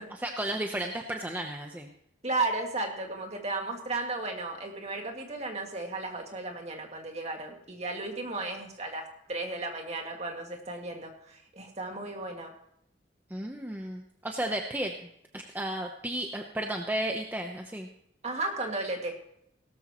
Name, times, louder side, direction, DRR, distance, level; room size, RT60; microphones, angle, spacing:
voice 1, 0.2-1.9 13.3-17.9, right 1 dB, 10° right, 2 dB, 0.8 m, -34 dB
voice 2, 2.2-12.5 18.2-19.2, right 2 dB, 35° right, 2 dB, 2.1 m, -34 dB
17.5 x 13.5 x 3.0 m, 0.74 s
head